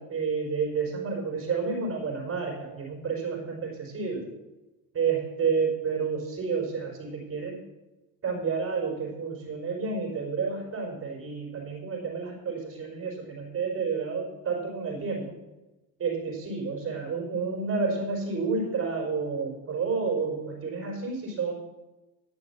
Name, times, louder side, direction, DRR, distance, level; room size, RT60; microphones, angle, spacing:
voice 1, 0.0-4.3 4.9-7.6 8.2-15.3 16.0-21.5, right 5 dB, 35° right, 0 dB, 4.4 m, -30 dB
10.5 x 6.7 x 7.1 m, 1.1 s
cardioid pair, 120°, 39 cm